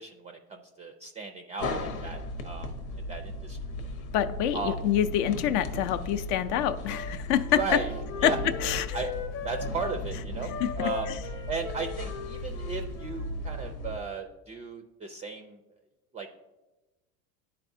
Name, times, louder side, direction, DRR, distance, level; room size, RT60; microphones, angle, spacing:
voice 1, 0.0-2.7 3.0-3.6 4.5-4.8 7.6-7.9 8.2-8.4 8.9-11.1 11.5-15.6 16.1-16.3, right 5 dB, 20° right, 6 dB, 0.3 m, -36 dB
sound 1, 1.6-14.0, left 1 dB, 80° left, 1.0 m, -36 dB
voice 2, 4.1-7.6 8.2-9.0 10.6-11.1, left 10 dB, 60° left, 12 dB, 0.5 m, -27 dB
Wind instrument woodwind instrument, 6.8-10.0 10.4-13.9, left 6 dB, 40° left, 0.8 m, -40 dB
11.0 x 4.2 x 2.6 m, 1.1 s
supercardioid pair, 110°, 42 cm